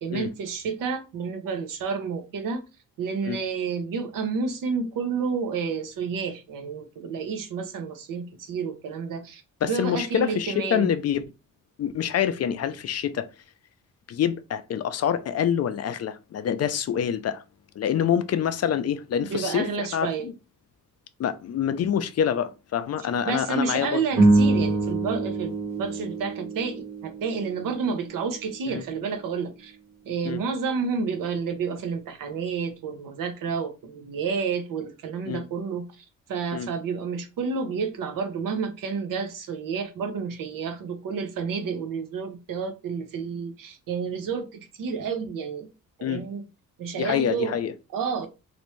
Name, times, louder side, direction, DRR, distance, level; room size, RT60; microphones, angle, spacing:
voice 1, 0.0-2.6 3.0-10.9 19.3-20.3 23.3-29.8 30.1-35.8 36.3-45.7 46.0-46.4 46.8-47.6 47.9-48.3, right 5 dB, 75° right, 0.8 m, -30 dB
voice 2, 9.6-11.2 11.8-13.3 14.1-17.4 17.8-20.3 21.2-24.0 28.7-28.8 30.2-30.4 35.3-35.4 36.5-36.7 46.0-46.2 47.0-47.7, left 9 dB, 50° left, 0.4 m, -26 dB
sound 1, 24.1-28.6, right 2 dB, 55° right, 1.3 m, -25 dB
3.2 x 2.6 x 3.1 m
cardioid pair, 100°, 33 cm